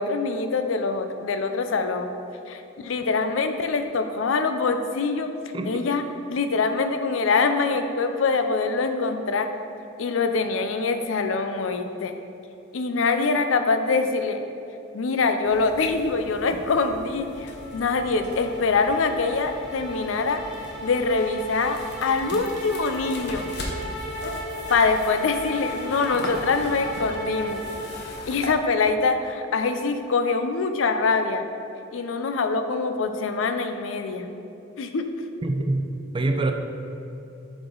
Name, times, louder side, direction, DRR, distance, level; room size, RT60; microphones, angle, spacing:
voice 1, 0.0-2.1 2.5-5.3 5.6-6.0 6.3-9.5 10.0-12.1 12.7-14.4 14.9-20.4 20.8-23.5 24.7-27.6 28.3-31.4 31.9-34.3 34.8-35.0, left 4 dB, 75° left, 8 dB, 0.5 m, -24 dB
sound 1, 15.4-28.6, left 1 dB, 55° left, 0.9 m, -40 dB
sound 2, 17.2-28.5, equal, 5° right, 1.2 m, -36 dB
voice 2, 35.4-35.9 36.1-36.5, right 2 dB, 25° right, 5 dB, 0.4 m, -24 dB
7.8 x 5.0 x 3.8 m, 2.8 s
head